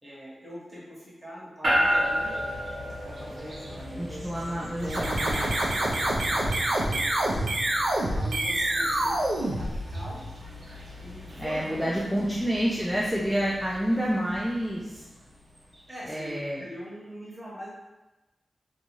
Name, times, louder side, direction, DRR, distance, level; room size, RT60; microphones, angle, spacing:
voice 1, 0.0-2.4 3.0-6.5 6.8-7.5 8.1-10.2 11.0-12.3 15.9-17.7, equal, 20° right, -7 dB, 1.0 m, -43 dB
sound 1, 1.6-15.9, equal, 50° right, 1.0 m, -34 dB
voice 2, 4.0-5.5 11.4-15.0 16.1-16.6, equal, ahead, -5 dB, 0.3 m, -28 dB
sound 2, 4.8-10.3, right 1 dB, 75° right, 0.5 m, -27 dB
2.6 x 2.2 x 3.0 m, 1.1 s
wide cardioid pair, 130°, 0 cm